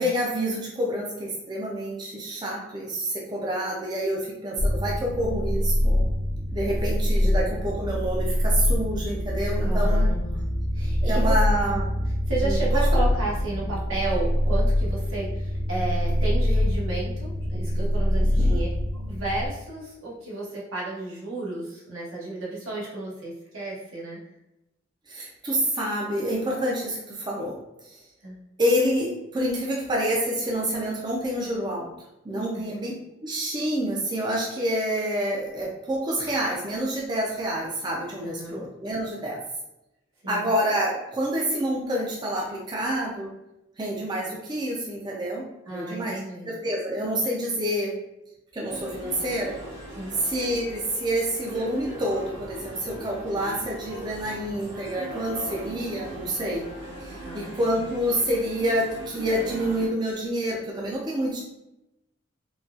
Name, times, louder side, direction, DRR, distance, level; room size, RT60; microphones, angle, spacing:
voice 1, 0.0-6.1 6.5-10.1 11.0-11.9 12.4-12.6 12.9-13.0 18.2-18.6 25.1-27.6 27.8-28.0 28.6-31.9 32.2-32.9 33.2-39.4 40.3-43.3 43.8-45.4 45.7-46.2 46.5-48.0 48.5-49.6 50.1-56.6 57.3-61.4, equal, 20° right, -3 dB, 0.4 m, -28 dB
sound 1, 4.6-19.5, left 1 dB, 60° left, 0.5 m, -24 dB
voice 2, 9.6-10.4 10.7-11.4 11.7-11.8 12.3-18.7 18.9-24.2 28.2-28.4 32.3-32.6 38.2-38.6 40.2-40.5 45.7-46.5 49.9-50.2 57.2-57.5, right 2 dB, 80° right, -5 dB, 1.1 m, -33 dB
sound 2, 48.7-59.9, right 1 dB, 60° right, 0.9 m, -39 dB
3.9 x 2.2 x 2.4 m, 0.92 s
head